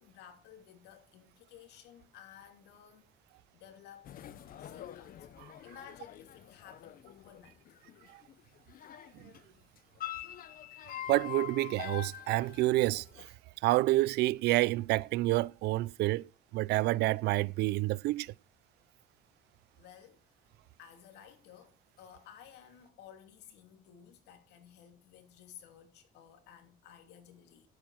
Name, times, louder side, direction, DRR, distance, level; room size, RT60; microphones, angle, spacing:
voice 1, 0.0-3.1 3.5-4.1 4.6-5.2 5.6-7.8 9.4-9.5 19.8-20.4 20.8-27.7, left 9 dB, 85° left, 2.7 m, -55 dB
sound 1, 4.0-9.4 9.8-13.3, left 12 dB, 55° left, 1.0 m, -45 dB
voice 2, 11.1-13.3 13.6-16.3 16.5-18.3, right 18 dB, 80° right, 0.5 m, -28 dB
11.0 x 8.8 x 6.2 m
cardioid pair, 110°, 17 cm